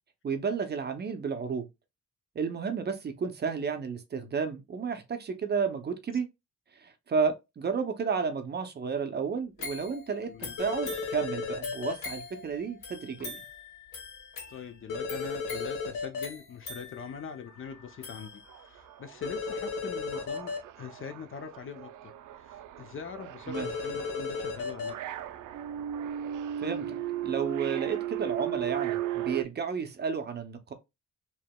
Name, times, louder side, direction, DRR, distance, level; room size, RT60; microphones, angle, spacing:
voice 1, 0.2-1.7 2.3-6.3 6.8-13.4 23.5-23.7 26.6-27.0 27.2-30.7, right 5 dB, 35° right, 0.5 m, -32 dB
sound 1, 9.6-18.8 19.3-19.4, left 4 dB, 70° left, 1.9 m, -44 dB
voice 2, 10.2-10.6 14.5-20.5 20.8-22.1 22.4-25.0, left 6 dB, 40° left, 0.5 m, -43 dB
sound 2, 10.6-11.9 14.9-16.3 19.2-20.6 23.5-24.9, left 4 dB, 85° left, 1.3 m, -34 dB
sound 3, 17.5-17.6 17.9-29.4, right 11 dB, 80° right, 0.5 m, -37 dB
4.5 x 3.0 x 2.2 m
wide cardioid pair, 165°, 31 cm